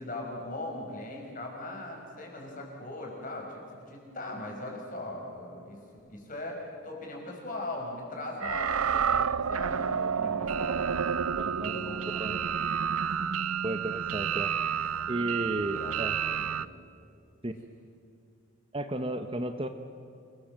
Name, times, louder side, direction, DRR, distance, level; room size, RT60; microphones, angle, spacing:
voice 1, 0.0-5.8 6.1-11.2 11.7-12.1 15.1-15.3 15.6-16.0 16.2-16.6, left 2 dB, 40° left, 0 dB, 6.0 m, -39 dB
sound 1, 8.4-16.7, right 7 dB, 90° right, 0.6 m, -30 dB
voice 2, 11.4-11.7 12.2-12.4 13.6-14.5 15.1-16.1 17.4-17.5 18.7-19.7, right 1 dB, 25° right, 8 dB, 1.0 m, -33 dB
28.5 x 20.5 x 7.7 m, 2.5 s
head